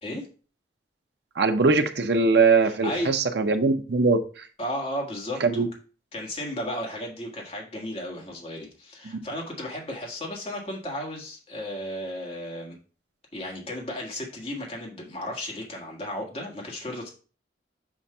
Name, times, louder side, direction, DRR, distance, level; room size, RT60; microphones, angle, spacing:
voice 1, 1.4-4.5 5.4-5.7 9.1-9.2, right 4 dB, 60° right, 7 dB, 0.7 m, -21 dB
voice 2, 2.6-3.2 4.6-5.6 6.1-12.8 13.3-17.1, left 1 dB, 30° left, -1 dB, 1.6 m, -34 dB
7.1 x 2.6 x 5.4 m, 0.38 s
head